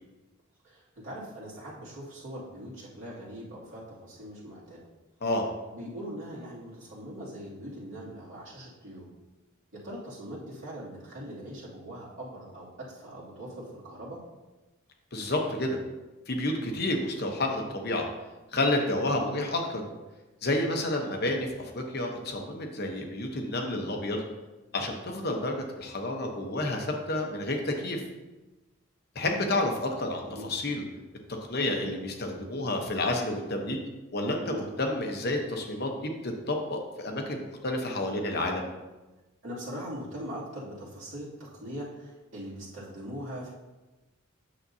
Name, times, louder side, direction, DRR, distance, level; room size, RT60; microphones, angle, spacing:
voice 1, 0.6-4.8 5.7-9.1 9.7-14.2 30.3-30.5 34.5-34.7 39.4-43.5, equal, 60° right, -7 dB, 2.6 m, -41 dB
voice 2, 15.1-15.8 16.3-18.0 18.5-19.9 20.4-24.2 24.7-28.0 29.1-30.8 31.5-33.8 34.1-38.7, left 1 dB, 45° left, 2 dB, 0.9 m, -30 dB
8.8 x 6.7 x 2.7 m, 1.1 s
head